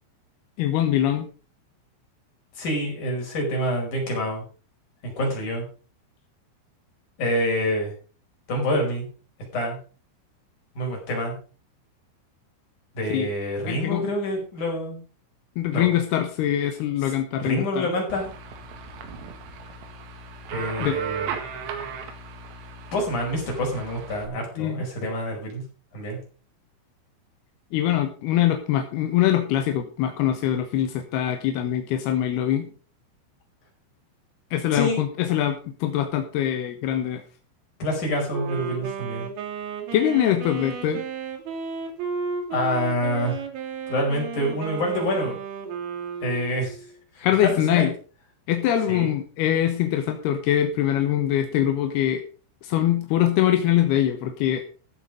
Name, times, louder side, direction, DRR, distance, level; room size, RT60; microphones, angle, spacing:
voice 1, 0.6-1.3 13.1-13.3 13.7-14.1 15.6-17.9 20.8-21.0 24.6-24.8 27.7-32.7 34.5-37.2 39.9-41.0 47.2-47.9 48.5-52.2 52.6-54.6, left 11 dB, 70° left, 6 dB, 2.6 m, -23 dB
voice 2, 2.6-4.4 5.0-5.6 7.2-7.9 8.5-9.1 9.5-9.8 10.7-11.4 12.9-15.0 15.7-15.9 17.0-17.1 17.4-18.3 20.5-21.3 22.9-25.6 25.9-26.2 34.7-35.0 37.8-39.3 42.5-43.4 43.9-45.4 46.2-46.8 47.2-47.9 48.9-49.1, equal, 40° left, 0 dB, 6.3 m, -27 dB
sound 1, 18.1-24.3, right 6 dB, 90° right, 4.7 m, -36 dB
Wind instrument woodwind instrument, 38.3-46.9, right 6 dB, 55° right, 3.8 m, -33 dB
15.0 x 8.2 x 5.2 m, 0.38 s
omnidirectional pair, 5.9 m